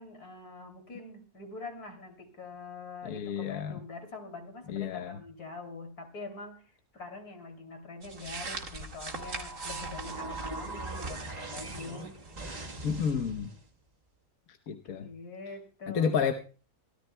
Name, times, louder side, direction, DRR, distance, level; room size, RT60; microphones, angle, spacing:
voice 1, 0.0-12.2 15.0-16.2, left 3 dB, 90° left, 5 dB, 3.3 m, -44 dB
voice 2, 3.0-3.8 4.7-5.2 12.8-13.5 14.7-15.1 15.9-16.3, left 7 dB, 70° left, 6 dB, 1.4 m, -30 dB
sound 1, 8.0-13.1, right 3 dB, 55° right, 2.2 m, -42 dB
sound 2, 9.1-13.7, right 2 dB, 30° right, 1.3 m, -41 dB
24.0 x 13.5 x 2.2 m, 0.36 s
omnidirectional pair, 1.6 m